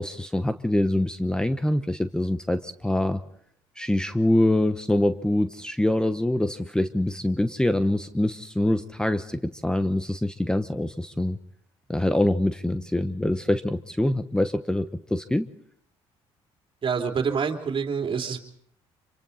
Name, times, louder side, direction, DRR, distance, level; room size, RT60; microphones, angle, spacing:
voice 1, 0.0-3.2 3.8-11.4 11.9-15.5, left 1 dB, 5° left, 10 dB, 1.0 m, -24 dB
voice 2, 16.8-18.4, right 6 dB, 45° right, 3 dB, 3.3 m, -26 dB
26.5 x 24.5 x 4.2 m, 0.69 s
supercardioid pair, 80°, 12 cm